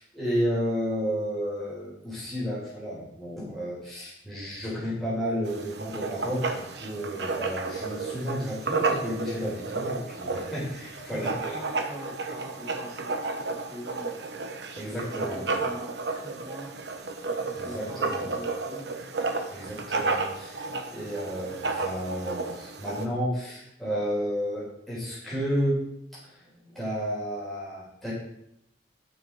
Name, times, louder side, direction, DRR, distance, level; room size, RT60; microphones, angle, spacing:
voice 1, 0.0-11.6 14.8-15.4 17.6-18.3 19.5-25.8 26.2-28.1, equal, ahead, -9 dB, 4.1 m, -32 dB
Writing, 5.4-23.1, right 3 dB, 65° right, 0.9 m, -32 dB
voice 2, 11.1-14.2 14.9-16.7 17.2-18.9 20.6-20.9, equal, 20° right, -5 dB, 3.0 m, -43 dB
9.7 x 6.7 x 4.7 m, 0.78 s
head